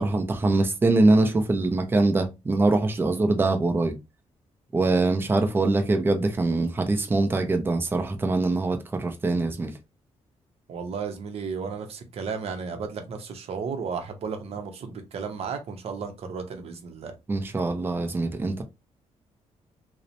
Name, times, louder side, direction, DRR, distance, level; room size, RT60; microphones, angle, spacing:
voice 1, 0.0-3.9 4.7-9.7 17.3-18.6, right 2 dB, 20° right, 0.5 m, -23 dB
voice 2, 10.7-17.1, right 5 dB, 55° right, 0.7 m, -34 dB
2.9 x 2.1 x 2.5 m
cardioid pair, 150°, 12 cm